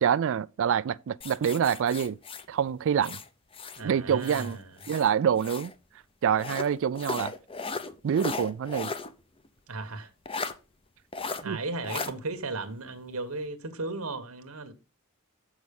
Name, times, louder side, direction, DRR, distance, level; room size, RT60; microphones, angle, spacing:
voice 1, 0.0-2.2 2.5-3.2 3.8-4.6 4.9-5.7 6.2-7.3 8.0-8.9 11.4-11.6, right 8 dB, 60° right, 0.3 m, -26 dB
sound 1, 1.2-3.8 4.2-5.7 6.4-9.1 9.4-9.5 10.3-10.5 11.1-11.4 11.8-12.1, left 4 dB, 25° left, 0.7 m, -36 dB
voice 2, 3.8-4.8 9.7-10.1 11.4-14.7, right 3 dB, 90° right, 1.3 m, -35 dB
7.4 x 6.2 x 5.2 m
head